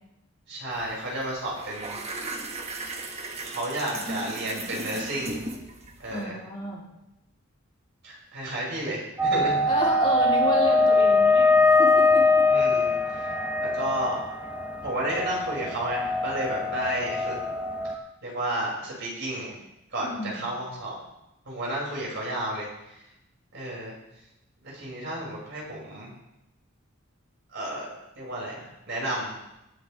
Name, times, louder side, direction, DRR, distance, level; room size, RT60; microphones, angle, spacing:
voice 1, 0.5-2.0 3.4-5.3 6.0-6.4 8.0-9.6 12.5-13.3 13.6-14.2 14.8-17.4 17.8-17.9 18.2-19.5 19.9-20.9 21.4-23.0 23.5-23.9 24.6-26.1 27.5-27.9 28.1-29.4, right 1 dB, 60° right, -4 dB, 6.4 m, -32 dB
sound 1, 0.7-0.9 1.2-6.2, right 2 dB, 30° right, 1.4 m, -36 dB
voice 2, 6.1-6.8 9.7-12.5 20.0-20.6, left 2 dB, 25° left, -5 dB, 3.5 m, -31 dB
sound 2, 9.2-17.9, left 2 dB, 5° right, 1.0 m, -22 dB
19.0 x 10.5 x 3.5 m, 0.89 s
head